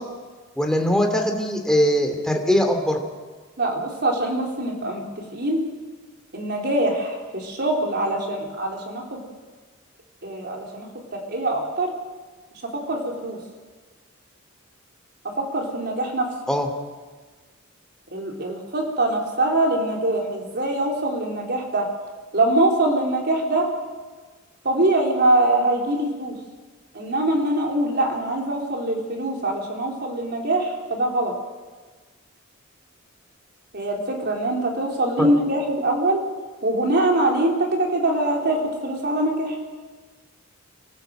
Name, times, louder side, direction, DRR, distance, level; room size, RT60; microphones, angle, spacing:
voice 1, 0.6-3.0 16.5-16.7 35.2-35.3, equal, 5° left, 3 dB, 2.6 m, -21 dB
voice 2, 3.6-5.0 5.3-5.6 6.3-9.2 10.2-11.9 12.7-13.4 15.4-16.3 18.1-21.9 22.3-23.7 24.6-26.3 26.9-31.3 33.7-36.2 36.6-39.6, right 1 dB, 50° right, 0 dB, 4.1 m, -23 dB
26.0 x 15.0 x 7.8 m, 1.4 s
head